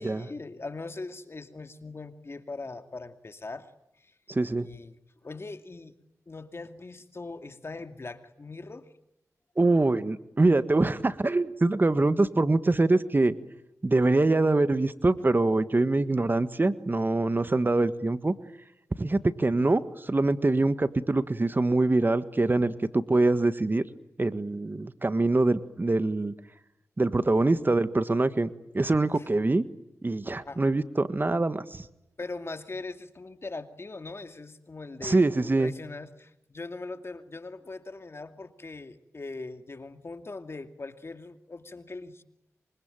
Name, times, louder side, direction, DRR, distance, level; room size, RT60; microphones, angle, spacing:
voice 1, 0.0-3.7 4.0-4.1 4.6-5.9 6.3-8.9 29.2-29.3 30.4-30.6 32.2-42.2, left 3 dB, 45° left, 8 dB, 2.5 m, -41 dB
voice 2, 4.3-4.7 9.6-13.3 13.8-18.3 19.0-23.8 24.2-26.3 27.0-28.5 28.7-29.6 30.0-31.8 35.0-35.7, right 2 dB, 35° right, 12 dB, 1.6 m, -24 dB
25.5 x 25.0 x 9.1 m, 0.83 s
cardioid pair, 55°, 6 cm